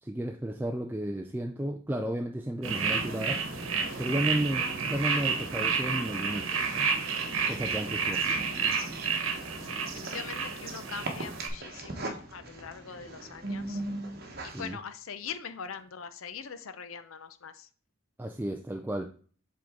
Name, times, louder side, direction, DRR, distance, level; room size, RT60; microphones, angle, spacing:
voice 1, 0.0-3.4 4.0-6.9 7.5-8.4 14.5-14.8 18.2-19.1, right 1 dB, 10° right, 4 dB, 0.3 m, -33 dB
sound 1, 2.6-11.5, right 5 dB, 75° right, 1.1 m, -30 dB
sound 2, 7.0-14.7, right 2 dB, 50° right, 1.1 m, -40 dB
voice 2, 9.6-13.8 14.4-17.7, left 6 dB, 80° left, 11 dB, 0.6 m, -42 dB
7.6 x 3.7 x 3.6 m, 0.42 s
head